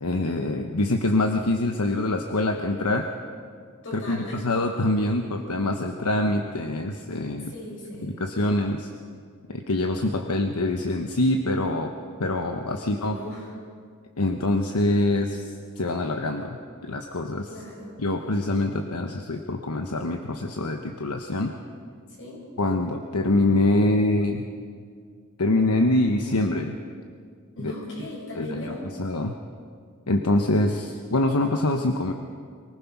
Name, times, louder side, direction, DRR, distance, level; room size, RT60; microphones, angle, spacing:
voice 1, 0.0-3.1 4.1-7.5 8.0-8.9 9.5-11.9 12.2-13.2 14.2-15.4 15.8-16.6 16.8-17.5 18.0-21.5 22.6-24.4 25.4-26.7 27.6-27.7 28.4-28.7 29.0-29.4 30.1-32.1, left 2 dB, 85° left, 5 dB, 1.1 m, -24 dB
voice 2, 3.8-4.4 7.5-8.2 12.7-13.5 17.5-18.0 22.2-22.5 27.6-28.9, left 1 dB, 60° left, -3 dB, 7.6 m, -38 dB
24.0 x 19.0 x 6.0 m, 2.1 s
head